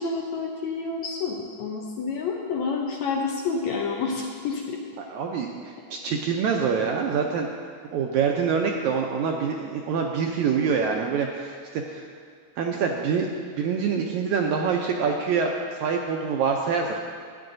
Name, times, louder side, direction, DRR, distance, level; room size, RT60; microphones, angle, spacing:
voice 1, 0.0-4.8, left 4 dB, 75° left, 0 dB, 1.7 m, -29 dB
voice 2, 5.1-7.5 7.9-12.0 12.6-15.5 15.8-17.1, right 6 dB, 80° right, 1 dB, 1.7 m, -25 dB
13.5 x 9.5 x 2.6 m, 2.1 s
omnidirectional pair, 3.8 m